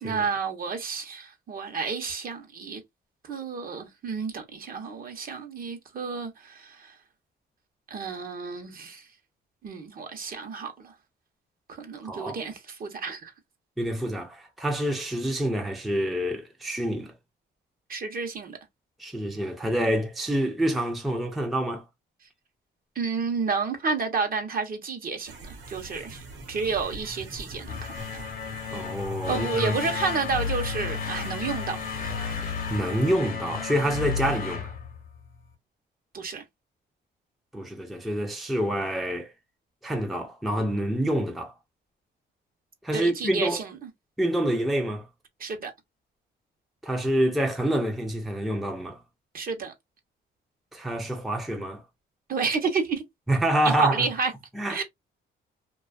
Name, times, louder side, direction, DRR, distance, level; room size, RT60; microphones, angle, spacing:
voice 1, 0.0-2.8 3.2-7.0 7.9-9.1 9.6-10.9 11.8-13.3 17.9-18.6 23.0-26.2 26.5-28.2 29.3-31.8 36.1-36.4 42.9-43.7 45.4-45.7 49.3-49.7 52.3-53.0 53.8-54.3 54.7-54.8, right 5 dB, 45° right, 0.8 m, -30 dB
voice 2, 12.0-12.4 13.8-17.1 19.0-21.8 28.7-29.8 32.7-34.7 37.5-39.3 39.8-41.5 42.8-43.6 44.2-45.1 46.8-49.0 50.7-51.8 53.3-54.1 54.5-54.8, right 1 dB, ahead, 0.5 m, -27 dB
sound 1, 25.3-33.1, right 2 dB, 70° right, 1.0 m, -44 dB
sound 2, 27.6-35.5, left 6 dB, 45° left, 0.8 m, -33 dB
2.5 x 2.3 x 2.3 m
cardioid pair, 90°, 20 cm